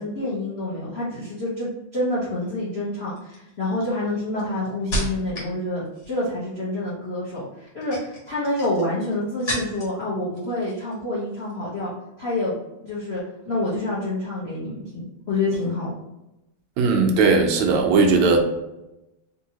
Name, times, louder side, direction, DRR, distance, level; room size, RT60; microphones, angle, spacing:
voice 1, 0.0-11.9 12.2-12.5 12.8-15.9, left 2 dB, 85° left, -8 dB, 0.5 m, -27 dB
sound 1, 2.1-2.5 3.2-5.6 5.9-6.4 7.6-10.0 10.3-11.0 11.3-11.5, right 1 dB, 50° left, 1.3 m, -33 dB
voice 2, 16.8-18.4, right 4 dB, 75° right, 3 dB, 1.3 m, -18 dB
3.6 x 2.7 x 2.8 m, 0.93 s
omnidirectional pair, 2.4 m